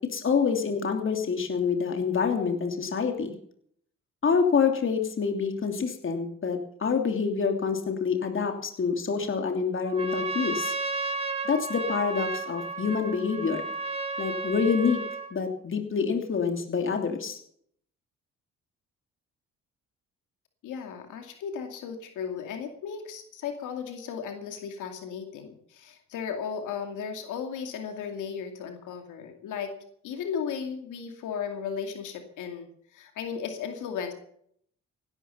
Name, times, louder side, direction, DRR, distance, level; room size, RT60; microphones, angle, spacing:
voice 1, 0.1-3.4 4.2-10.7 11.4-13.6 14.2-15.0 15.3-17.4, left 5 dB, 40° left, 5 dB, 2.9 m, -27 dB
Trumpet, 9.8-15.3, right 3 dB, 20° right, 2.5 m, -33 dB
voice 2, 20.6-29.7 30.0-34.1, left 7 dB, 85° left, 5 dB, 2.5 m, -35 dB
16.0 x 12.5 x 5.6 m, 0.65 s
cardioid pair, 90°, 30 cm